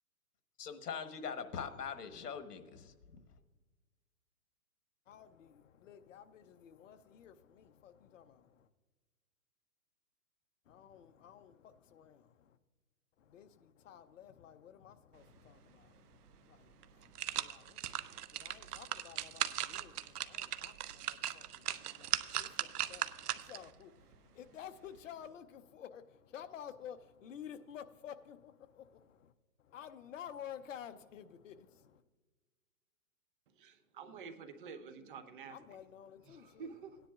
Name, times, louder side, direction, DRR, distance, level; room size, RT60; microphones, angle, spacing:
voice 1, 0.6-3.2, left 6 dB, 85° left, 1.3 m, -42 dB
voice 2, 5.1-8.7 10.7-12.6 13.2-29.3 29.6-32.0 35.5-36.7, left 9 dB, 55° left, 0.7 m, -52 dB
sound 1, 16.3-16.4 16.8-23.7 24.1-24.2, right 11 dB, 75° right, 0.7 m, -38 dB
voice 3, 33.5-35.6 36.2-37.0, right 5 dB, 35° right, 0.8 m, -49 dB
17.5 x 10.0 x 2.4 m
hypercardioid pair, 150°, 47 cm